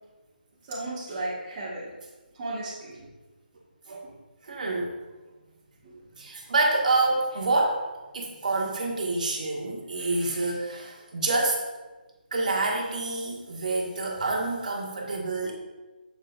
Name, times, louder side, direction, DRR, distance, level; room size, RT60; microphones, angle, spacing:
voice 1, 0.7-1.9 2.3-3.1 5.8-6.0, right 2 dB, 20° right, -8 dB, 1.6 m, -35 dB
voice 2, 4.4-4.9 6.2-7.9 8.1-11.6 12.3-15.5, right 2 dB, 50° right, -3 dB, 1.7 m, -27 dB
14.5 x 5.2 x 2.5 m, 1.2 s
hypercardioid pair, 170°, 5 cm